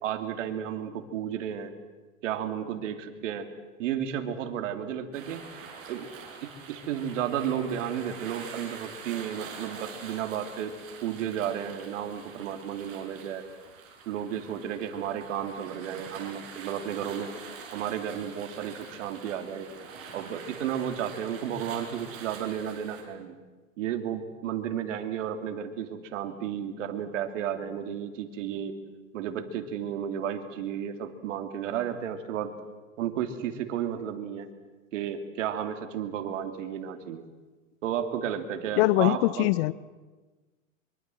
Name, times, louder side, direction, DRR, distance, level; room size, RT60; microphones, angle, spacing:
voice 1, 0.0-1.7 2.2-3.5 3.8-5.4 5.9-6.1 6.4-10.8 11.0-13.4 14.1-19.7 20.1-23.4 23.8-28.8 29.1-32.5 33.0-34.5 34.9-37.2 37.8-39.5, right 9 dB, 65° right, 7 dB, 2.9 m, -33 dB
sound 1, 5.1-23.0, right 5 dB, 35° right, 7.0 m, -45 dB
voice 2, 38.8-39.7, left 19 dB, 45° left, 20 dB, 0.7 m, -22 dB
24.5 x 24.0 x 7.8 m, 1.3 s
hypercardioid pair, 135°, 40 cm